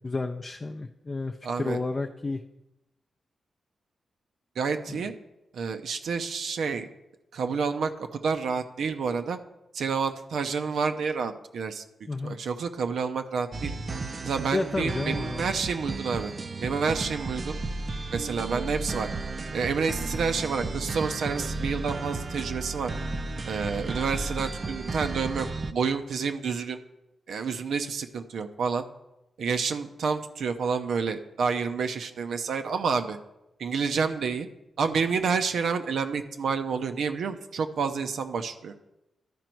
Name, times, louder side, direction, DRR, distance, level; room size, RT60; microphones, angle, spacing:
voice 1, 0.0-2.4 4.9-5.0 12.1-12.4 14.5-15.5, left 3 dB, 25° left, 3 dB, 0.4 m, -31 dB
voice 2, 1.4-1.8 4.6-5.1 5.5-6.9 7.3-9.4 9.7-11.8 12.2-13.7 14.2-16.3 16.6-17.6 18.1-19.1 19.5-22.9 23.4-26.8 27.3-28.8 29.4-33.2 33.6-34.5 34.8-38.7, right 5 dB, 75° right, 7 dB, 0.7 m, -29 dB
sound 1, 13.5-25.7, right 3 dB, 35° right, 0.5 m, -34 dB
12.5 x 5.2 x 4.5 m, 0.93 s
wide cardioid pair, 145°, 0 cm